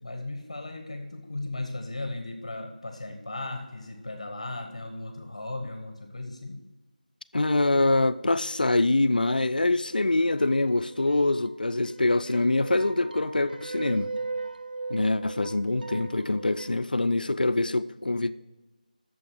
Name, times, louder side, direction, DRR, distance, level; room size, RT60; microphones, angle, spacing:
voice 1, 0.0-6.6 10.1-10.2, left 2 dB, 45° left, 1.2 m, -36 dB
voice 2, 7.3-14.1 14.9-18.3, left 2 dB, 75° left, 0.6 m, -24 dB
sound 1, 10.4-11.5 11.8-16.8, right 3 dB, 80° right, 0.4 m, -38 dB
8.8 x 6.9 x 6.1 m
figure-of-eight pair, 180°, 5 cm